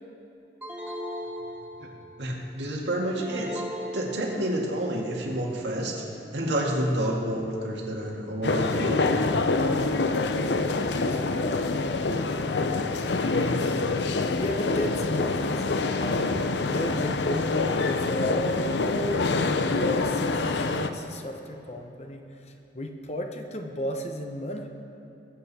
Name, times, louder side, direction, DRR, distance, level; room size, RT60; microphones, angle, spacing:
sound 1, 0.6-2.2 3.2-4.8, equal, 10° right, 1.8 m, -37 dB
voice 1, 2.2-3.6 3.9-6.0 6.3-9.2, right 1 dB, 85° right, -1 dB, 2.0 m, -29 dB
sound 2, 8.4-20.9, left 3 dB, 80° left, 0.6 m, -26 dB
voice 2, 10.6-19.3 19.7-24.7, left 1 dB, 35° left, 4 dB, 0.9 m, -34 dB
20.0 x 8.1 x 4.2 m, 3.0 s
head